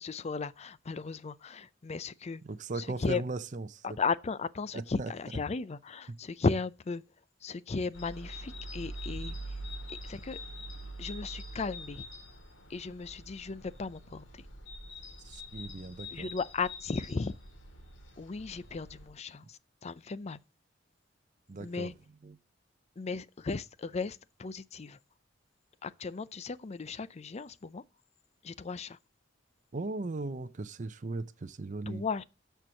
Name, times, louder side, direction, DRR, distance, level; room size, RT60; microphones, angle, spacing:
voice 1, 0.0-2.4 2.8-3.2 3.8-7.0 7.4-9.6 10.0-10.4 11.0-12.1 12.7-14.5 16.1-17.3 18.2-20.4 21.6-21.9 23.0-25.0 25.8-27.8 28.4-29.0 31.9-32.2, left 4 dB, 35° left, 0.5 m, -36 dB
voice 2, 2.4-3.8 4.7-5.1 6.1-6.2 15.2-16.3 21.5-21.9 22.2-22.4 29.7-32.0, right 3 dB, 40° right, 0.6 m, -38 dB
sound 1, 7.9-19.1, equal, 85° left, 2.1 m, -44 dB
13.0 x 4.6 x 6.3 m
head